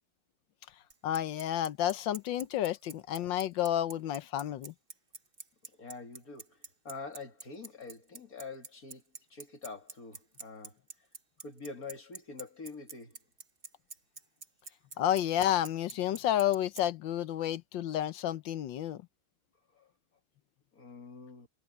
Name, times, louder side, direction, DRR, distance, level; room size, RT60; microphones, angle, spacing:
Bicycle, 0.9-16.8, right 3 dB, 25° right, 1.8 m, -45 dB
voice 1, 1.0-4.7 15.0-19.0, left 11 dB, 70° left, 1.4 m, -30 dB
voice 2, 5.8-6.6 6.8-9.0 9.3-10.8 11.4-13.2 19.7-19.9 20.7-21.5, left 4 dB, 40° left, 2.9 m, -45 dB
omnidirectional pair, 2.4 m